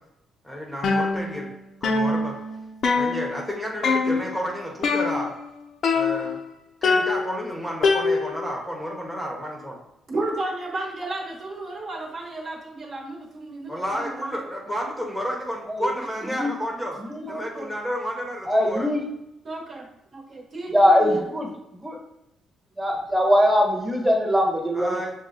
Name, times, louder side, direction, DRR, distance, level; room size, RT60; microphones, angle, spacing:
voice 1, 0.4-1.5 1.8-2.4 2.9-5.3 5.9-6.4 6.8-9.8 13.7-17.0 17.3-18.9 24.8-25.1, equal, 5° left, -2 dB, 0.9 m, -31 dB
sound 1, 0.8-1.6 1.8-3.5 3.8-4.4 4.8-5.5 5.8-6.5 6.8-8.5, left 4 dB, 60° left, 0.5 m, -24 dB
voice 2, 10.1-14.3 17.3-17.7 19.4-21.1, right 2 dB, 45° right, -1 dB, 1.1 m, -33 dB
voice 3, 18.4-19.0 20.7-22.0 22.8-25.0, equal, 15° right, -1 dB, 1.2 m, -21 dB
6.3 x 2.1 x 3.8 m, 0.86 s
cardioid pair, 90°, 0 cm